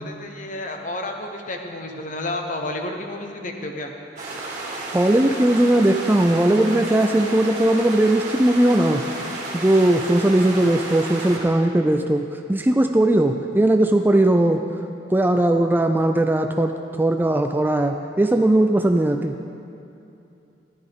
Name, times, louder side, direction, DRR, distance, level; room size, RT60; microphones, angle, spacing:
voice 1, 0.0-3.9, left 2 dB, 45° left, 3 dB, 1.0 m, -31 dB
sound 1, 4.2-11.4, right 2 dB, 45° right, 2.2 m, -32 dB
voice 2, 4.9-9.0 9.5-14.6 15.1-19.4, right 1 dB, 10° right, 6 dB, 0.3 m, -19 dB
14.0 x 11.5 x 3.6 m, 2.8 s
head